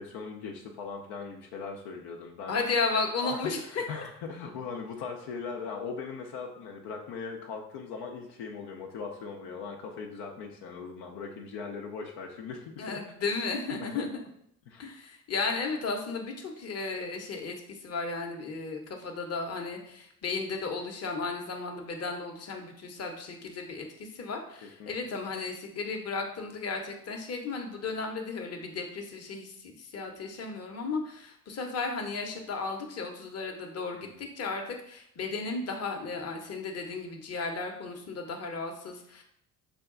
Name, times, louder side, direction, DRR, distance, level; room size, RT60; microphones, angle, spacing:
voice 1, 0.0-2.6 3.2-13.0 13.8-14.0 14.7-14.9 24.6-24.9 33.9-34.2, left 5 dB, 70° left, 1 dB, 0.7 m, -40 dB
voice 2, 2.5-4.0 12.8-14.2 14.8-39.2, left 4 dB, 35° left, 3 dB, 0.9 m, -34 dB
5.0 x 2.3 x 3.7 m, 0.70 s
hypercardioid pair, 60°, 42 cm